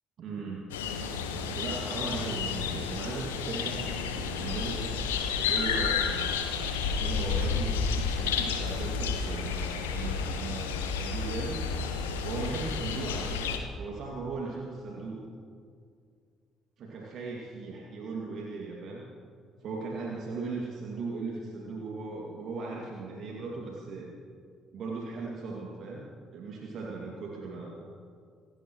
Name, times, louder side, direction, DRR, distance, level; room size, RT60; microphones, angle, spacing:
voice 1, 0.2-0.6 1.3-3.9 4.4-5.1 5.4-6.3 6.9-11.6 12.2-13.5 13.8-15.2 16.8-19.0 19.6-24.1 24.7-26.1 26.3-27.9, right 3 dB, 50° right, -2 dB, 2.3 m, -38 dB
sound 1, 0.7-13.6, left 5 dB, 75° left, 1.3 m, -31 dB
28.0 x 15.0 x 3.1 m, 2.2 s
figure-of-eight pair, 45°, 0 cm